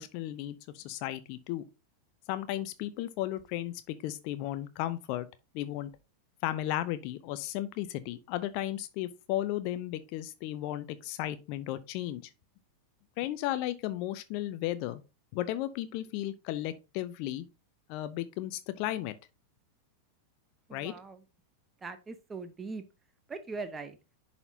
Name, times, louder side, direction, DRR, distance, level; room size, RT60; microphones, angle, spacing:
voice 1, 0.0-1.6 2.3-5.3 5.5-5.9 6.4-12.3 13.2-15.0 15.3-17.4 17.9-19.1 20.7-20.9, left 14 dB, 45° left, 0.5 m, -34 dB
voice 2, 20.7-21.2 21.8-22.8 23.3-24.0, right 4 dB, 15° right, 0.8 m, -40 dB
10.5 x 4.2 x 2.7 m
figure-of-eight pair, 90°, 0 cm